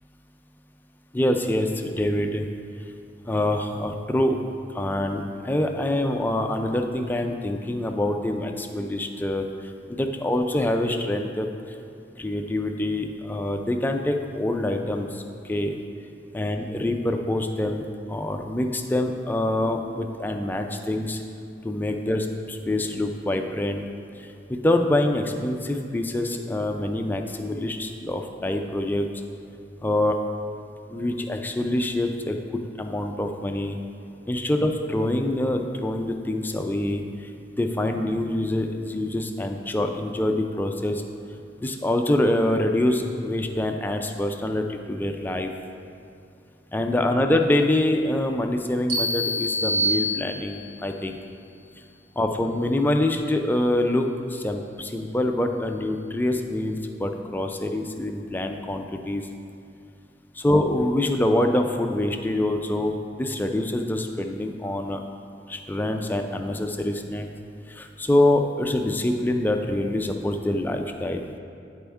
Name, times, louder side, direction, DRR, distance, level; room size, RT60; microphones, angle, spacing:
voice 1, 1.1-2.5 3.2-4.4 4.7-11.8 12.2-15.7 16.3-17.8 18.1-21.2 21.6-23.8 24.2-29.1 29.8-30.2 30.9-33.8 34.3-37.3 37.6-41.0 41.6-45.5 46.7-51.2 52.2-59.2 60.4-65.0 65.5-67.3 67.7-71.2, left 1 dB, 10° left, 4 dB, 0.3 m, -25 dB
sound 1, 48.9-50.8, equal, 70° right, 1.0 m, -26 dB
10.0 x 4.3 x 3.5 m, 2.6 s
head